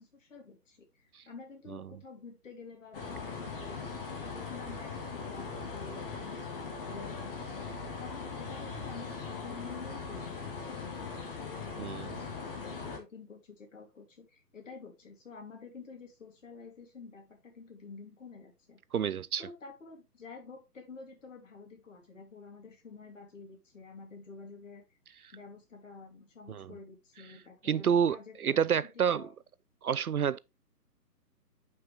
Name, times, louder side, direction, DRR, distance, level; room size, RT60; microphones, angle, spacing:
voice 1, 0.0-3.9 4.2-7.7 8.0-18.8 19.4-24.8 25.3-29.3, left 4 dB, 50° left, 3.0 m, -49 dB
sound 1, 2.9-13.0, left 4 dB, 35° left, 1.8 m, -40 dB
voice 2, 11.8-12.1 18.9-19.5 26.5-26.7 27.6-29.3 29.8-30.4, right 8 dB, 65° right, 0.5 m, -29 dB
7.5 x 5.8 x 3.3 m
figure-of-eight pair, 140°, 48 cm